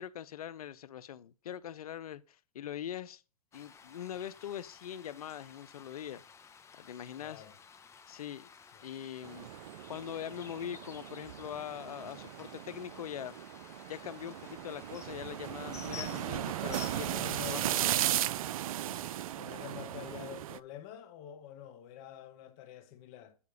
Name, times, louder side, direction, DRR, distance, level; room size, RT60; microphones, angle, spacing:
voice 1, 0.0-3.2 3.5-6.2 6.7-7.4 8.1-8.5 8.8-9.5 9.9-13.3 13.9-17.8, left 10 dB, 75° left, 0.6 m, -42 dB
sound 1, 3.5-17.7, left 6 dB, 15° left, 0.8 m, -53 dB
voice 2, 7.2-7.6 8.7-8.9 17.1-17.7 18.8-23.4, left 11 dB, 45° left, 1.3 m, -48 dB
sound 2, 9.2-20.6, right 12 dB, 65° right, 0.4 m, -36 dB
8.6 x 4.7 x 5.0 m
hypercardioid pair, 120°, 19 cm